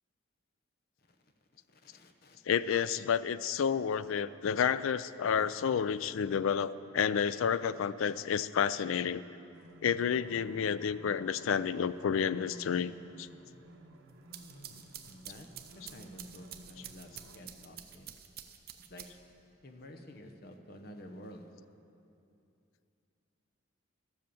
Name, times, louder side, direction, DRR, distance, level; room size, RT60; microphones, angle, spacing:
voice 1, 1.7-2.4 14.5-15.5 15.9-18.2 18.9-19.1 19.6-21.5, left 1 dB, 50° left, 4 dB, 0.9 m, -51 dB
voice 2, 2.5-9.2 9.8-13.3, left 7 dB, 85° left, 16 dB, 0.4 m, -30 dB
sound 1, 9.5-17.4, right 1 dB, 85° right, 0.9 m, -55 dB
sound 2, 14.1-19.4, right 10 dB, 45° right, 0.6 m, -49 dB
13.0 x 7.7 x 7.0 m, 2.6 s
head